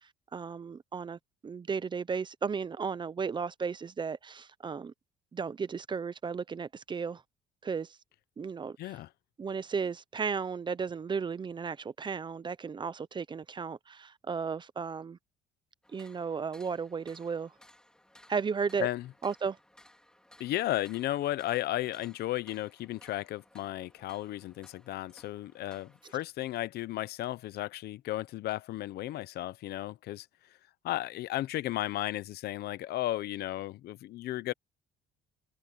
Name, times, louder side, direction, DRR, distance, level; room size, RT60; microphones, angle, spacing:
voice 1, 0.3-4.9 5.3-7.2 7.6-8.0 8.4-8.8 9.4-15.2 15.9-17.5 18.3-18.9 19.2-19.6, right 5 dB, 25° right, 0.7 m, -34 dB
voice 2, 8.8-9.1 18.8-19.1 20.4-30.3 30.8-34.5, left 15 dB, 70° left, 0.9 m, -34 dB
sound 1, 15.8-26.2, left 1 dB, 5° left, 4.1 m, -60 dB
cardioid pair, 110°, 17 cm